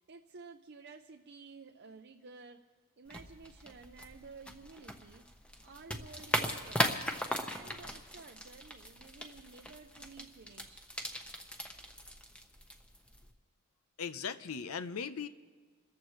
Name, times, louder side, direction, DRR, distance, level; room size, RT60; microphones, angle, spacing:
voice 1, 0.0-2.6 3.0-5.2 5.6-7.0 7.4-10.9, right 4 dB, 50° right, 4 dB, 0.6 m, -53 dB
sound 1, 3.1-13.3, equal, 5° left, 1.0 m, -39 dB
voice 2, 14.0-15.3, left 6 dB, 85° left, 11 dB, 0.7 m, -38 dB
28.5 x 14.5 x 3.2 m, 1.5 s
head